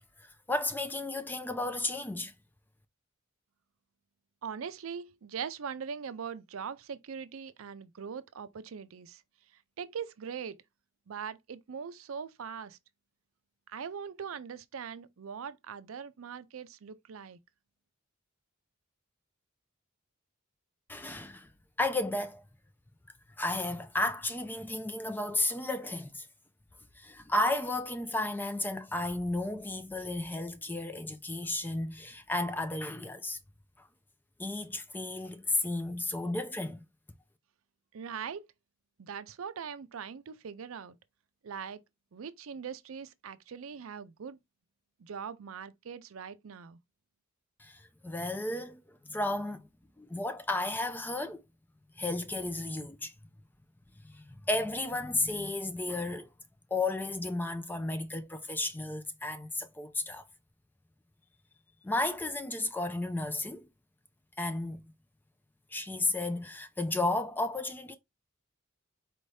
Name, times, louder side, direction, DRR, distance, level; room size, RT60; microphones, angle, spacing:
voice 1, 0.5-2.3 20.9-21.5 21.8-22.4 23.4-26.3 27.0-33.4 34.4-36.8 47.6-49.6 50.0-51.4 52.0-53.1 54.0-56.3 56.7-60.2 61.8-63.7 64.4-64.8 65.7-68.0, left 2 dB, 10° left, 0.4 m, -33 dB
voice 2, 4.4-9.2 9.8-10.6 11.1-12.8 13.7-17.4 37.9-38.5 39.0-41.0 41.4-41.8 42.1-44.4 45.0-46.8, right 7 dB, 80° right, 0.5 m, -41 dB
4.4 x 2.7 x 3.2 m
head